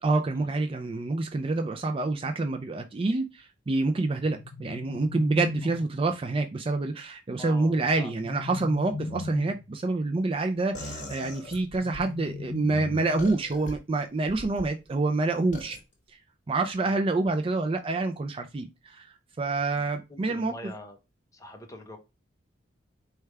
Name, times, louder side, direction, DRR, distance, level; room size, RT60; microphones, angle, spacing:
voice 1, 0.0-15.8 16.5-20.5, right 3 dB, 30° right, 0.4 m, -27 dB
sound 1, 4.1-6.1 7.8-9.7 11.5-13.5, left 3 dB, 65° left, 0.4 m, -38 dB
voice 2, 7.4-8.1 8.9-9.1 14.4-14.5 16.8-17.0 19.7-21.0 21.3-22.0, left 1 dB, 15° left, 0.9 m, -44 dB
sound 2, 10.7-12.1 13.2-13.7 14.3-14.7 15.5-15.8, left 1 dB, 40° left, 1.9 m, -40 dB
4.6 x 3.4 x 3.2 m
head